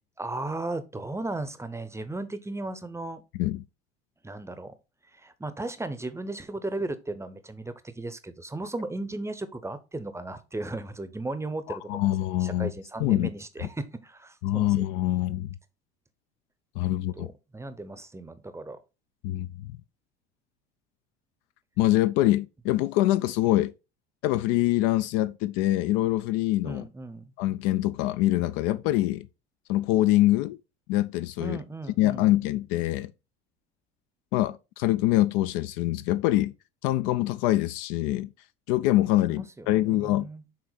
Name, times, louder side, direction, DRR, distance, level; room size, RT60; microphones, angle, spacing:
voice 1, 0.2-3.2 4.2-4.7 5.1-12.1 12.4-14.7 17.2-18.8 26.6-27.3 31.4-32.3 39.3-40.4, right 2 dB, 10° right, 0.7 m, -36 dB
voice 2, 11.7-12.7 13.0-13.3 14.4-15.5 16.8-17.3 19.2-19.7 21.8-23.7 24.2-26.8 27.4-29.3 29.7-30.6 30.9-31.6 32.0-33.1 34.3-36.5 36.8-38.3 38.7-40.3, left 15 dB, 55° left, 0.4 m, -24 dB
6.5 x 4.1 x 4.1 m
figure-of-eight pair, 65°, 33 cm